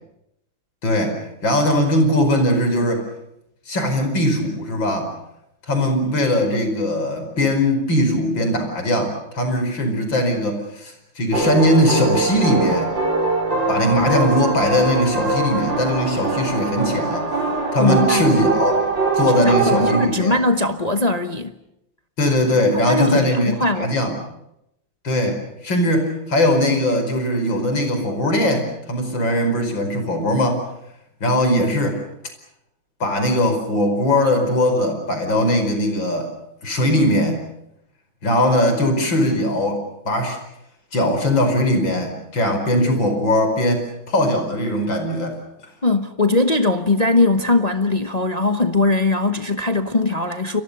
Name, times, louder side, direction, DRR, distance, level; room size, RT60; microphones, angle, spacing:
voice 1, 0.8-3.1 3.7-5.1 5.7-13.0 13.7-17.3 17.7-18.9 19.1-20.4 22.2-24.2 25.0-30.6 31.2-32.0 33.0-36.3 36.6-37.4 38.2-40.4 40.9-45.4, left 1 dB, 65° left, 5.7 m, -20 dB
sound 1, 11.3-20.1, right 3 dB, 65° right, 4.3 m, -22 dB
voice 2, 17.8-18.3 19.4-21.5 22.7-23.9 45.8-50.6, left 2 dB, 30° left, 0.9 m, -20 dB
30.0 x 23.0 x 6.8 m
omnidirectional pair, 2.2 m